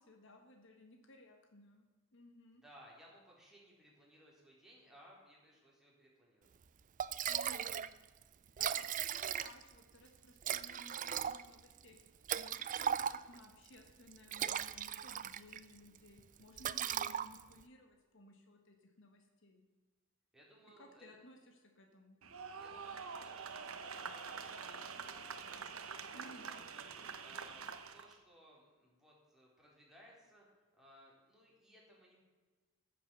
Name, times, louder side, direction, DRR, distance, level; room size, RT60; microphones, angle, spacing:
voice 1, 0.0-2.6 7.3-7.9 8.6-12.0 12.3-19.6 20.8-22.2 26.1-26.6, left 1 dB, 65° left, 4 dB, 1.6 m, -59 dB
voice 2, 2.6-6.5 20.3-21.2 22.6-27.6 27.9-32.2, equal, ahead, -4 dB, 4.0 m, -62 dB
Liquid, 6.6-6.7 7.0-7.9 8.2-8.3 8.5-9.8 10.4-13.5 14.1-15.6 16.0-16.2 16.6-17.6, right 9 dB, 40° right, 0.4 m, -38 dB
sound 1, 22.2-28.1, right 5 dB, 80° right, 1.0 m, -46 dB
14.5 x 7.6 x 7.0 m, 1.3 s
head